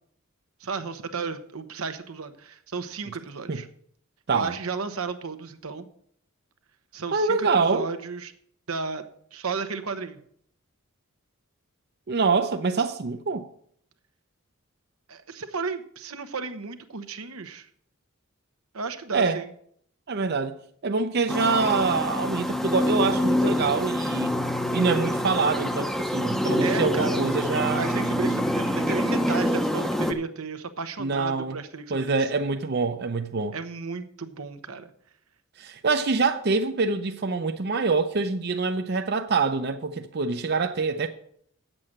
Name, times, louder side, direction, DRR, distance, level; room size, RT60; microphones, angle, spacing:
voice 1, 0.6-3.7 4.3-5.9 6.9-8.3 8.7-9.0 9.3-10.2 15.1-17.7 18.7-19.5 26.6-27.3 27.7-32.3 33.5-34.9, right 4 dB, 85° right, 1.0 m, -33 dB
voice 2, 7.1-7.9 12.1-13.4 19.1-19.4 20.1-20.5 20.8-24.3 24.7-28.1 31.0-31.6 31.9-33.5 35.6-41.1, right 4 dB, 50° right, 0.6 m, -25 dB
sound 1, 21.3-30.1, equal, ahead, 0.6 m, -26 dB
8.7 x 7.6 x 6.5 m
head